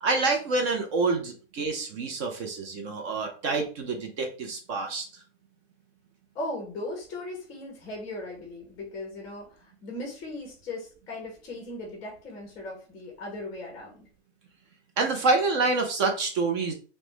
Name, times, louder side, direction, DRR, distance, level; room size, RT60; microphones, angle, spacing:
voice 1, 0.0-5.2 15.0-16.7, right 3 dB, 25° right, 3 dB, 0.4 m, -27 dB
voice 2, 6.3-14.0, left 2 dB, 15° left, 0 dB, 0.6 m, -38 dB
3.1 x 2.1 x 3.0 m, 0.38 s
hypercardioid pair, 140°, 35 cm